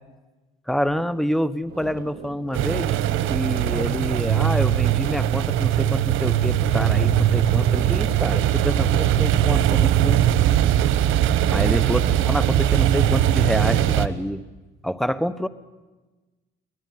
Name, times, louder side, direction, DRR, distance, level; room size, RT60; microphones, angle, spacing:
voice 1, 0.7-2.9 3.3-10.2 11.5-14.4 14.8-15.5, equal, ahead, 15 dB, 1.2 m, -27 dB
sound 1, 0.9-1.0 1.6-4.9 5.5-6.0 6.4-9.4, right 4 dB, 55° right, 5.0 m, -39 dB
sound 2, 2.5-14.1, right 11 dB, 90° right, 1.2 m, -20 dB
24.0 x 19.0 x 9.6 m, 1.2 s
cardioid pair, 90°, 20 cm